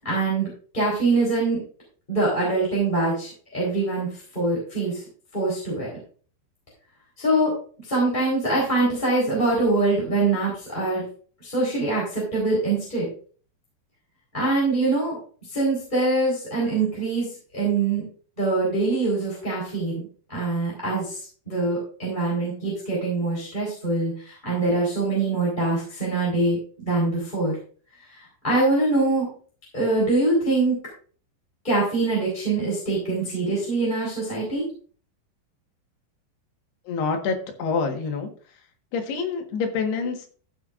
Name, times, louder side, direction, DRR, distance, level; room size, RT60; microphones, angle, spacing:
voice 1, 0.0-1.6 2.1-5.0 5.3-5.9 7.2-7.5 7.8-11.0 11.4-13.1 14.3-15.1 15.5-18.0 18.4-20.0 20.3-27.6 28.1-28.2 28.4-29.3 29.7-30.8 31.6-34.6, right 2 dB, 10° left, -5 dB, 3.9 m, -24 dB
voice 2, 36.9-38.7 38.9-40.3, left 5 dB, 75° left, 3 dB, 3.6 m, -27 dB
14.5 x 7.7 x 2.5 m, 0.42 s
omnidirectional pair, 4.7 m